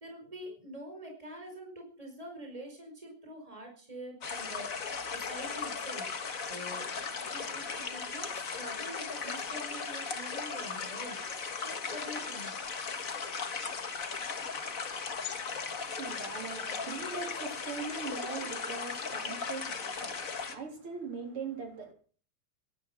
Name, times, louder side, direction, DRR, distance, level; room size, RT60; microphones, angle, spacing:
voice 1, 0.0-6.1 6.5-11.2 11.6-12.5, equal, 15° right, 2 dB, 5.1 m, -46 dB
sound 1, 4.2-20.5, left 5 dB, 40° left, 1.9 m, -37 dB
voice 2, 15.0-21.9, right 4 dB, 80° right, 3 dB, 4.5 m, -41 dB
17.5 x 12.0 x 5.9 m, 0.43 s
omnidirectional pair, 2.4 m